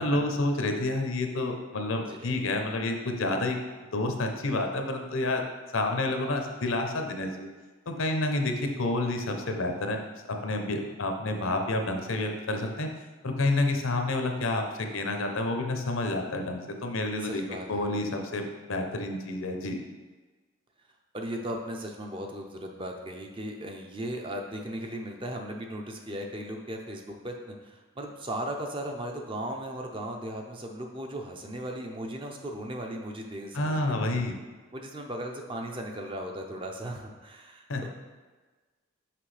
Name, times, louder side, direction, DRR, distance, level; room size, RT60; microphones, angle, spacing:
voice 1, 0.0-3.6 3.9-5.4 5.7-7.5 7.9-10.0 10.3-12.9 13.2-17.4 17.7-19.8 33.5-34.4 37.7-37.9, left 2 dB, 80° left, 4 dB, 0.8 m, -29 dB
voice 2, 2.1-2.4 17.2-17.9 21.1-34.2 34.7-37.9, right 1 dB, 25° right, 2 dB, 0.5 m, -37 dB
5.9 x 5.5 x 3.3 m, 1.3 s
head